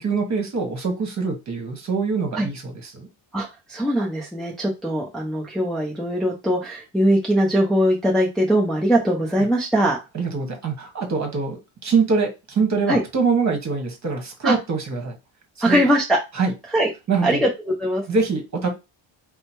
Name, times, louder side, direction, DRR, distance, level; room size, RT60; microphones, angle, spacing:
voice 1, 0.0-3.1 10.1-15.2 15.7-15.9 16.3-16.5 17.1-17.4 18.1-18.7, right 4 dB, 35° right, 3 dB, 1.5 m, -24 dB
voice 2, 3.3-10.0 12.9-13.0 14.4-14.6 15.6-16.2 16.7-16.9 17.2-18.0, equal, ahead, -3 dB, 0.6 m, -21 dB
4.9 x 2.2 x 4.5 m, 0.25 s
wide cardioid pair, 180°, 47 cm